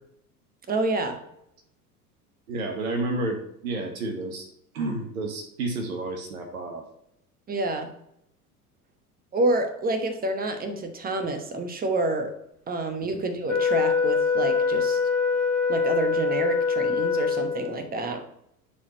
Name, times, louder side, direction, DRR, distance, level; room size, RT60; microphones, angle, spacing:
voice 1, 0.7-1.2 7.5-7.9 9.3-12.3 12.7-15.0 15.7-18.2, right 2 dB, 20° right, 7 dB, 1.1 m, -28 dB
voice 2, 2.5-4.4 4.7-6.8, right 2 dB, 65° right, 3 dB, 1.2 m, -30 dB
Wind instrument woodwind instrument, 13.5-17.9, left 5 dB, 5° left, 1.4 m, -24 dB
9.6 x 4.1 x 2.9 m, 0.76 s
figure-of-eight pair, 80°, 45 cm